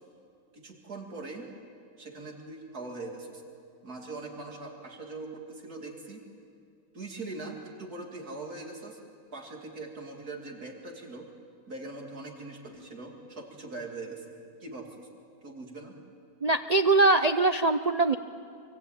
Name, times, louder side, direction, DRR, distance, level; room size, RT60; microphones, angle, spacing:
voice 1, 0.5-1.5 2.0-3.4 3.8-6.2 6.9-9.0 9.3-11.3 11.7-15.1 15.4-16.0, right 3 dB, 65° right, 1 dB, 2.9 m, -41 dB
voice 2, 16.4-18.2, right 3 dB, 85° right, 9 dB, 0.3 m, -22 dB
26.0 x 25.0 x 8.7 m, 2.4 s
omnidirectional pair, 1.7 m